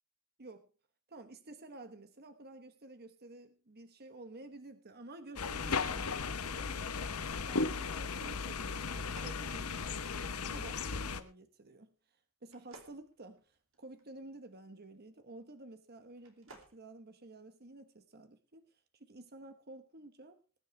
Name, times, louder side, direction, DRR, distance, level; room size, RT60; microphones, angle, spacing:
voice 1, 1.1-10.0 10.4-11.9 12.4-20.4, right 2 dB, 45° right, 9 dB, 1.2 m, -52 dB
sound 1, 5.4-11.2, left 4 dB, 80° left, 1.0 m, -36 dB
sound 2, 8.9-10.3 12.5-14.0 16.1-16.8, right 2 dB, 65° right, 2.7 m, -57 dB
20.5 x 9.9 x 3.3 m, 0.32 s
head